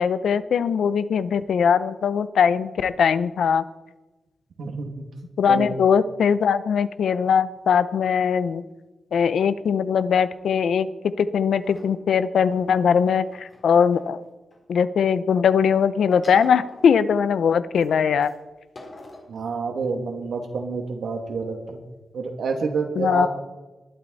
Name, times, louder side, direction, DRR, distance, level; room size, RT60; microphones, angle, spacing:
voice 1, 0.0-3.6 5.4-8.6 9.1-10.9 11.2-14.2 14.7-18.3 23.0-23.3, left 7 dB, 80° left, 14 dB, 0.7 m, -20 dB
voice 2, 4.6-5.0 5.5-5.7 19.3-21.8 22.1-23.3, right 4 dB, 80° right, 3 dB, 2.5 m, -28 dB
sound 1, 11.6-12.0 12.7-14.6 16.1-17.2 17.8-17.9 18.2-18.3 18.7-19.4, left 2 dB, 35° left, 3.6 m, -46 dB
20.0 x 12.0 x 4.2 m, 1.1 s
wide cardioid pair, 150°, 0 cm